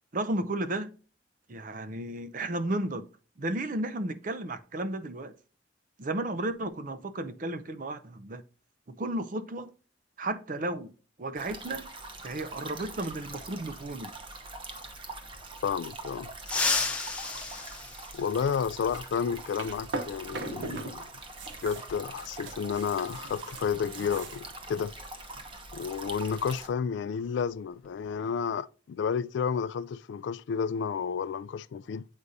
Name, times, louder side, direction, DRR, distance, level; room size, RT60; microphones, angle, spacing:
voice 1, 0.1-0.9 1.5-3.1 3.4-5.3 6.0-8.4 8.9-9.7 10.2-10.9 11.2-11.9 12.2-14.1, right 1 dB, 45° right, 0.5 m, -33 dB
sound 1, 11.4-26.7, right 2 dB, 25° right, 0.9 m, -44 dB
voice 2, 15.6-16.3 18.1-21.1 21.6-24.9 25.7-32.1, left 6 dB, 70° left, 0.3 m, -31 dB
sound 2, 16.4-18.8 20.5-20.6 21.8-21.9 23.5-23.7 24.0-24.2 24.7-26.9 27.2-27.4 27.8-28.3, left 3 dB, 5° left, 0.8 m, -33 dB
sound 3, 18.8-20.9 21.2-24.5, right 3 dB, 75° right, 0.8 m, -40 dB
8.0 x 4.9 x 2.7 m
head